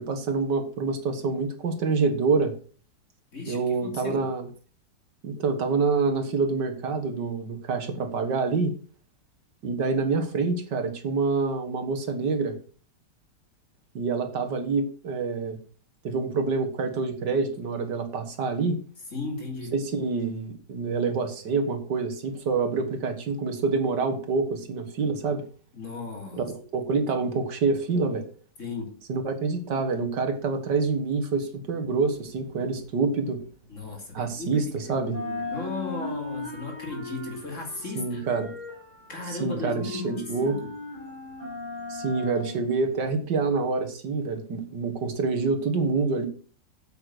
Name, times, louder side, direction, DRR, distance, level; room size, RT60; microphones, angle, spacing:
voice 1, 0.0-2.5 3.5-4.5 5.2-8.7 9.6-12.6 13.9-15.6 16.0-18.8 19.7-25.4 26.4-28.2 29.1-33.4 34.1-35.2 38.0-38.5 39.3-40.6 41.9-46.3, right 4 dB, 80° right, 2.2 m, -27 dB
voice 2, 3.3-4.3 19.1-19.7 25.7-26.4 28.6-29.0 33.7-38.2 39.1-40.6, left 3 dB, 45° left, 3.4 m, -36 dB
sound 1, 32.1-34.7 35.0-43.2, left 3 dB, 20° right, 2.8 m, -38 dB
8.6 x 8.0 x 6.3 m
omnidirectional pair, 1.9 m